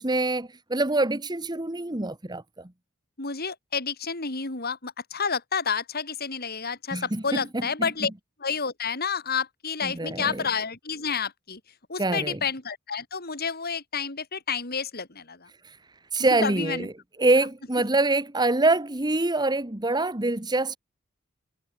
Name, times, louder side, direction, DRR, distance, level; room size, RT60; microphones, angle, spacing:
voice 1, 0.0-2.7 6.9-7.9 9.8-10.5 12.0-12.4 16.1-16.9 17.2-20.8, right 2 dB, 20° right, 1.4 m, -25 dB
voice 2, 3.2-8.1 8.4-11.6 11.9-15.5 16.3-16.9, left 5 dB, 45° left, 3.2 m, -30 dB
head